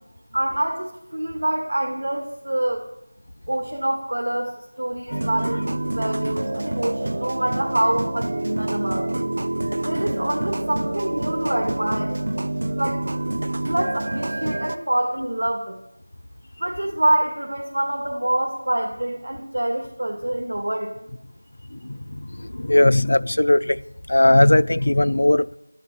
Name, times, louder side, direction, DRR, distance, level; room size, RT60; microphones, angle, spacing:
voice 1, 0.3-2.8 3.5-9.2 9.8-12.2 12.8-13.0 13.7-15.8 16.6-20.9, right 1 dB, 65° right, 2.2 m, -26 dB
sound 1, 5.1-14.8, right 1 dB, 45° right, 0.7 m, -27 dB
voice 2, 21.7-23.8 24.1-25.5, left 1 dB, 50° left, 0.4 m, -18 dB
13.0 x 11.0 x 7.0 m
figure-of-eight pair, 175°, 0 cm